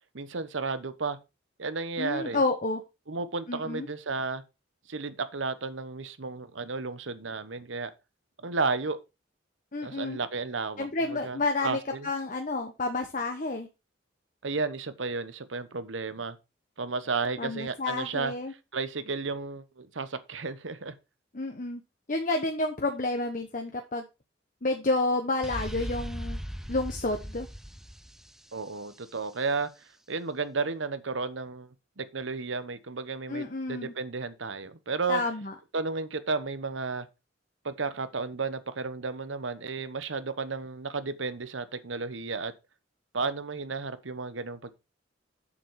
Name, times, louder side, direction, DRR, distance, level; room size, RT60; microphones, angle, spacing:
voice 1, 0.1-1.2 1.6-2.4 3.1-4.4 4.9-7.9 8.4-9.0 9.8-12.1 14.4-16.4 16.8-18.3 18.7-20.9 28.5-29.7 30.1-35.2 35.7-37.1 37.6-42.5 43.1-44.7, right 4 dB, 85° right, 1.0 m, -33 dB
voice 2, 2.0-2.8 3.5-3.9 9.7-10.2 10.8-13.7 17.4-18.5 21.3-21.8 22.1-24.1 24.6-26.4 26.7-27.5 33.3-33.9 35.1-35.5, left 2 dB, 45° left, 1.1 m, -30 dB
sound 1, 25.4-29.2, equal, ahead, 0.4 m, -38 dB
7.2 x 7.1 x 4.7 m
head